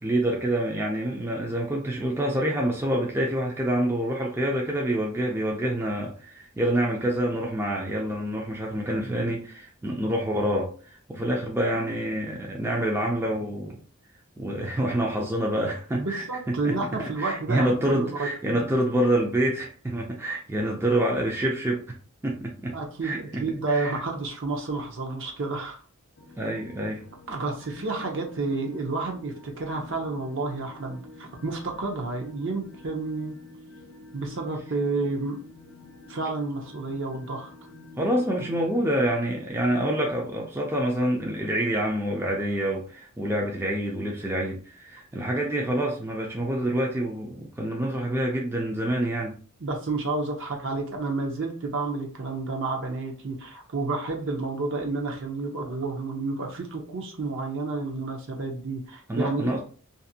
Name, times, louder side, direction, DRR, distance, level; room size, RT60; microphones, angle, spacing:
voice 1, 0.0-13.8 14.4-21.9 22.2-22.7 23.0-24.0 26.4-27.0 38.0-49.4 59.1-59.6, right 1 dB, 10° right, -1 dB, 0.4 m, -27 dB
voice 2, 15.9-18.7 22.7-25.8 27.3-33.3 34.1-35.4 36.1-37.5 49.6-59.5, right 3 dB, 55° right, 2 dB, 0.7 m, -30 dB
sound 1, 26.2-39.1, left 2 dB, 50° left, 0.6 m, -48 dB
2.6 x 2.5 x 2.7 m, 0.41 s
head